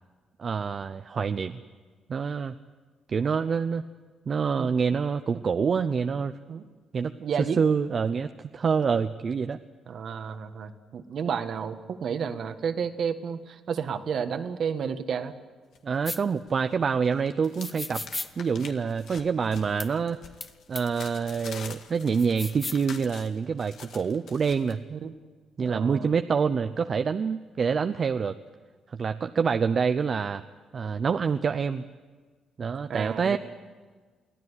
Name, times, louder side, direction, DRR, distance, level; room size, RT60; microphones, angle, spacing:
voice 1, 0.4-1.6 2.1-2.5 3.1-3.8 4.3-6.3 6.9-7.1 7.6-9.6 15.8-18.0 18.4-20.2 20.7-24.8 25.6-28.3 28.9-30.4 30.7-31.8 32.6-33.4, right 6 dB, 45° right, 9 dB, 0.7 m, -26 dB
voice 2, 7.2-7.6 9.9-15.3 24.9-25.1 25.6-26.1 32.9-33.4, right 7 dB, 60° right, 8 dB, 1.6 m, -31 dB
sound 1, 15.7-16.6 16.9-24.7, left 6 dB, 70° left, 1.9 m, -46 dB
sound 2, 16.0-16.2 17.6-18.3 19.8-19.9 20.4-20.5 20.7-20.8 22.2-22.8, left 2 dB, 20° left, 1.0 m, -35 dB
23.5 x 15.5 x 9.9 m, 1.5 s
cardioid pair, 90°, 0 cm